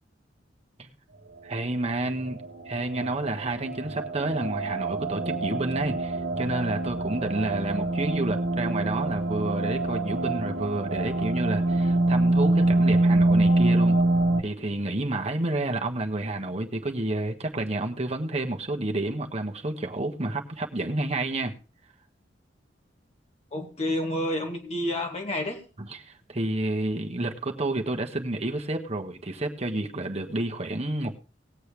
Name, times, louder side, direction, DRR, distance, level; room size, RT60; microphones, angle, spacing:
voice 1, 1.4-2.4 2.7-14.0 14.4-21.5 25.8-31.2, right 2 dB, 35° right, 4 dB, 1.3 m, -30 dB
sound 1, 2.1-14.4, right 2 dB, 70° right, 1.4 m, -25 dB
voice 2, 23.5-25.6, left 1 dB, 35° left, 2 dB, 2.3 m, -29 dB
19.5 x 8.0 x 3.3 m, 0.34 s
head